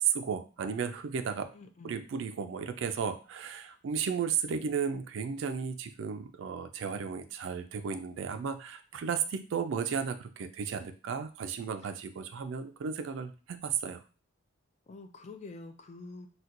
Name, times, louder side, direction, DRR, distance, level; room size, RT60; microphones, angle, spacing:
voice 1, 0.0-1.5 1.8-14.0, right 7 dB, 60° right, 9 dB, 0.3 m, -34 dB
voice 2, 1.5-2.0 11.8-12.0 14.9-16.3, left 3 dB, 35° left, 7 dB, 0.3 m, -47 dB
4.2 x 2.2 x 2.5 m, 0.35 s
head